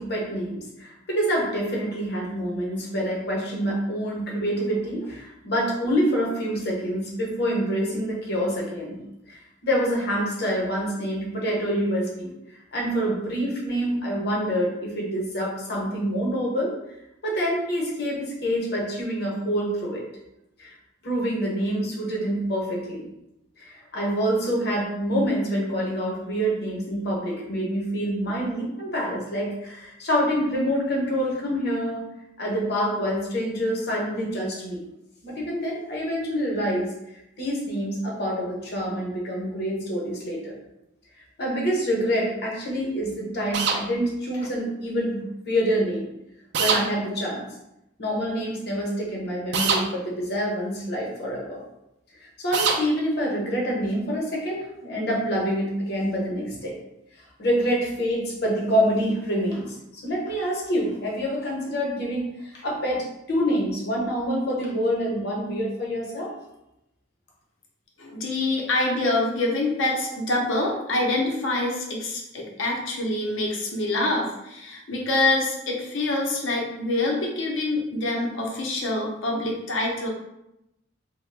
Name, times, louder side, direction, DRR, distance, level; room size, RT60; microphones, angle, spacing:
voice 1, 0.0-9.0 9.3-12.3 12.7-16.7 17.2-20.0 20.6-20.7 21.0-23.0 23.6-32.0 32.4-34.8 35.2-36.9 37.4-40.5 41.4-46.1 46.6-47.5 48.0-51.6 52.2-56.7 57.4-66.3, equal, 55° left, -2 dB, 0.9 m, -26 dB
sound 1, 43.5-43.8 46.5-46.8 49.5-49.8 52.5-52.8, right 5 dB, 60° right, 0.4 m, -22 dB
voice 2, 68.0-80.1, left 2 dB, 80° left, -1 dB, 0.7 m, -26 dB
2.8 x 2.2 x 3.3 m, 0.87 s
head